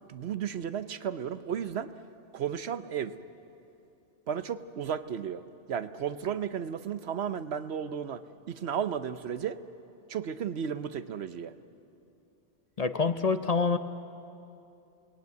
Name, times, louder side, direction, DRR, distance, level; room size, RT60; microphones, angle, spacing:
voice 1, 0.1-1.9 2.3-3.1 4.3-5.4 5.7-8.2 8.5-9.6 10.1-11.5, right 8 dB, 70° right, 12 dB, 1.0 m, -33 dB
voice 2, 12.8-13.8, left 4 dB, 40° left, 10 dB, 0.7 m, -26 dB
28.0 x 19.0 x 9.5 m, 2.7 s
omnidirectional pair, 1.1 m